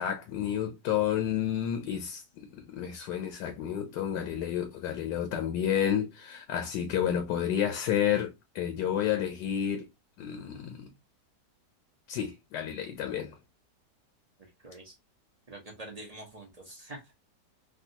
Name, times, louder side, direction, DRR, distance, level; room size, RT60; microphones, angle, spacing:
voice 1, 0.0-2.2 2.5-9.9 10.2-10.9 12.1-13.3, left 9 dB, 75° left, 1.2 m, -30 dB
voice 2, 14.6-15.0 15.5-17.1, right 1 dB, 55° right, 0.4 m, -45 dB
3.5 x 2.3 x 2.7 m
omnidirectional pair, 1.9 m